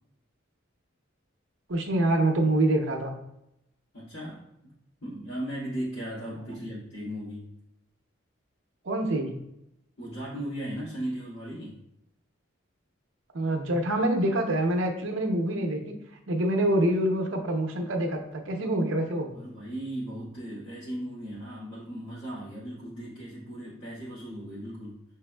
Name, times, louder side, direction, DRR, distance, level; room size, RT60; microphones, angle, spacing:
voice 1, 1.7-3.1 6.5-6.6 8.8-9.3 13.3-15.9 16.3-19.3, right 1 dB, 70° right, 3 dB, 0.7 m, -26 dB
voice 2, 3.9-4.7 5.0-7.5 10.0-11.8 19.3-25.0, right 1 dB, 65° left, -11 dB, 1.5 m, -37 dB
6.2 x 3.3 x 2.2 m, 0.83 s
head